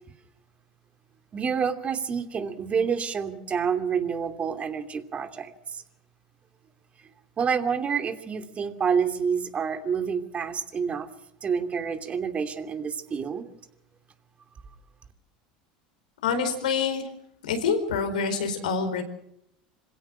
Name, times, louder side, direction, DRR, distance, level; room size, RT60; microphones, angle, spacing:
voice 1, 1.3-5.8 7.4-11.1 11.4-13.5, right 6 dB, 30° right, 7 dB, 2.7 m, -28 dB
voice 2, 16.2-17.1 17.4-19.0, left 5 dB, 80° left, 7 dB, 4.6 m, -26 dB
26.5 x 17.0 x 6.1 m, 0.79 s
hypercardioid pair, 85°, 4 cm